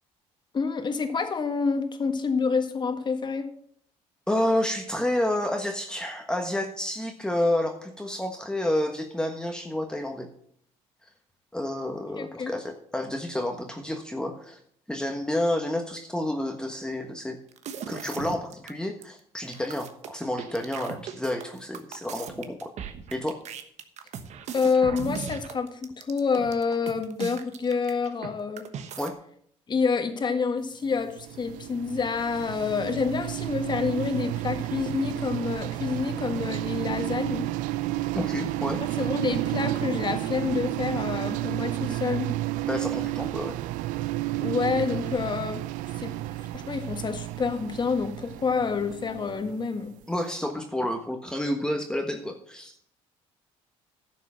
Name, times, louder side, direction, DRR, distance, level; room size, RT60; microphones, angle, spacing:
voice 1, 0.5-3.5 12.2-12.5 24.5-28.7 29.7-37.5 38.8-42.3 44.4-45.6 46.0-46.1 46.5-49.9, left 5 dB, 35° left, 7 dB, 1.7 m, -28 dB
voice 2, 4.3-10.3 11.5-14.6 14.9-17.4 17.9-22.7 23.1-23.4 29.0-29.1 38.1-38.8 42.6-43.6 50.1-52.7, left 1 dB, 5° left, 3 dB, 1.3 m, -29 dB
sound 1, 17.5-18.7 19.0-19.1 19.4-28.3 28.6-29.1, right 7 dB, 60° right, 1.2 m, -38 dB
sound 2, 30.9-49.9, right 17 dB, 80° right, 0.5 m, -31 dB
11.0 x 6.6 x 6.3 m, 0.63 s
supercardioid pair, 85°, 13 cm